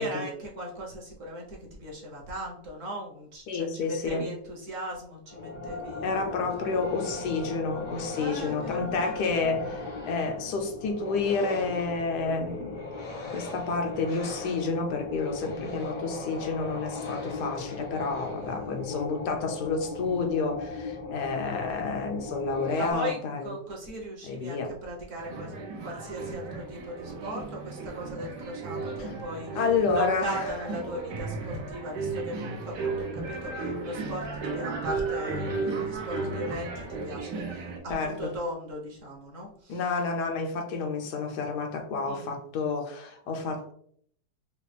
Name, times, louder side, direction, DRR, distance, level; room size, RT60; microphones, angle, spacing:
voice 1, 0.0-6.2 8.2-9.6 18.4-18.9 22.8-25.5 25.8-29.6 29.9-39.8 42.0-42.4, equal, 50° right, -2 dB, 1.2 m, -38 dB
voice 2, 3.5-4.3 6.0-12.8 13.3-23.5 24.3-24.7 29.5-30.5 37.9-38.3 39.7-43.7, left 4 dB, 75° left, 4 dB, 1.3 m, -30 dB
sound 1, 5.3-22.9, left 3 dB, 40° left, 0.7 m, -38 dB
sound 2, 25.2-37.8, right 3 dB, 90° right, 1.5 m, -34 dB
5.0 x 2.4 x 3.3 m, 0.62 s
omnidirectional pair, 1.8 m